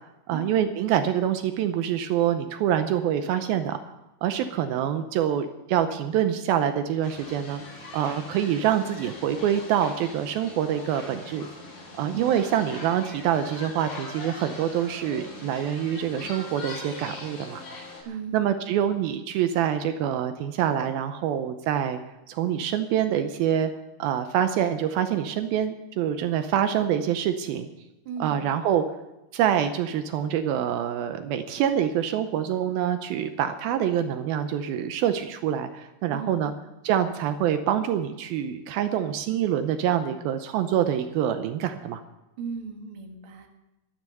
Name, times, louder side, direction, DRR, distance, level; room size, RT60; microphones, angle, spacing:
voice 1, 0.3-3.8 4.2-7.6 7.9-11.5 12.0-17.6 18.3-22.0 22.3-23.7 24.0-27.7 28.2-28.8 29.3-36.5 36.8-42.0, right 10 dB, 80° right, 9 dB, 2.4 m, -26 dB
sound 1, 7.0-18.0, left 2 dB, 75° left, 6.1 m, -41 dB
voice 2, 18.1-18.5 18.8-18.9 28.0-28.5 36.1-36.5 42.4-43.5, right 5 dB, 45° right, 3 dB, 1.9 m, -36 dB
13.0 x 12.5 x 6.6 m, 0.99 s
omnidirectional pair, 4.5 m